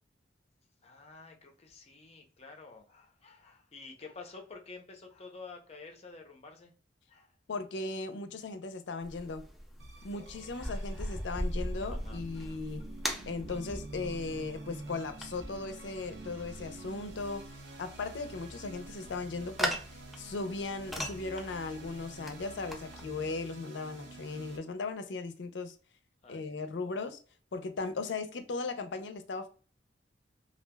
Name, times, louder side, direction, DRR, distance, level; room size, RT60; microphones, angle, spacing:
voice 1, 0.8-6.7 7.1-7.3 10.0-10.8 11.9-12.6 26.2-27.0, left 4 dB, 35° left, 3 dB, 0.6 m, -51 dB
voice 2, 7.5-9.4 10.0-12.8 13.3-17.4 17.8-25.7 26.3-27.2 27.5-29.5, left 3 dB, 80° left, 9 dB, 0.5 m, -37 dB
sound 1, 9.0-23.1, equal, ahead, 0.4 m, -40 dB
sound 2, 9.8-24.6, right 2 dB, 75° right, 0.7 m, -48 dB
3.2 x 2.4 x 2.2 m, 0.39 s
head